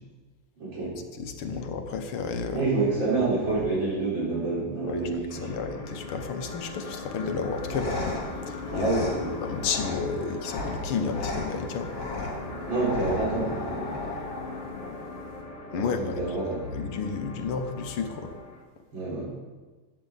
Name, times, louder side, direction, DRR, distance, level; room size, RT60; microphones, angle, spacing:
voice 1, 0.6-1.0 2.5-5.6 8.7-9.3 12.4-13.9 15.7-16.8 18.9-19.3, right 3 dB, 60° right, -6 dB, 4.9 m, -28 dB
voice 2, 1.1-2.7 4.8-9.0 9.4-11.9 15.7-16.2 16.7-18.3, left 5 dB, 85° left, 7 dB, 1.9 m, -32 dB
sound 1, 5.3-18.6, left 3 dB, 25° left, 0.9 m, -40 dB
sound 2, 7.4-15.4, left 2 dB, 60° left, 3.0 m, -35 dB
13.5 x 9.3 x 4.0 m, 1.3 s
omnidirectional pair, 2.3 m